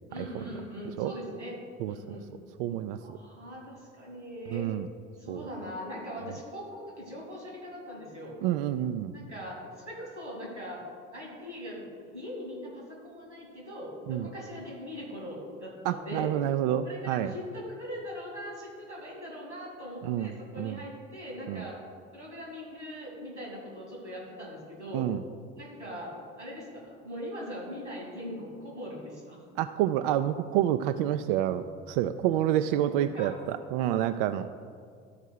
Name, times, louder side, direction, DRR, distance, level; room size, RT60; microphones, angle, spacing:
voice 1, 0.1-1.6 1.9-2.3 3.0-4.7 5.2-8.3 9.1-10.8 11.1-16.3 16.8-21.8 22.1-25.1 25.6-29.4 33.1-33.3, equal, 90° right, -3 dB, 2.8 m, -41 dB
voice 2, 2.6-3.2 4.5-4.9 5.3-5.5 8.4-9.2 14.1-14.3 15.8-17.3 20.0-20.8 21.5-21.6 24.9-25.2 29.6-34.5, right 11 dB, 50° right, 10 dB, 0.4 m, -28 dB
12.5 x 4.5 x 6.3 m, 2.1 s
figure-of-eight pair, 65°, 34 cm